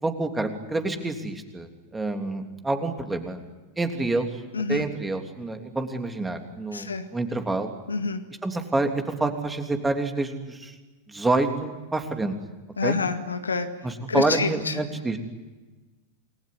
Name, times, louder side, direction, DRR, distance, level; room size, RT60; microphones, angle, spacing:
voice 1, 0.0-3.4 3.8-4.4 4.7-7.7 8.4-10.7 11.1-12.4 12.8-13.0 13.8-15.2, right 2 dB, 10° right, 5 dB, 3.2 m, -27 dB
voice 2, 4.5-4.9 6.7-7.0 7.9-8.2 12.8-13.7 14.1-14.8, left 4 dB, 75° left, 8 dB, 2.0 m, -27 dB
28.5 x 21.0 x 9.7 m, 1.2 s
figure-of-eight pair, 90°, 0 cm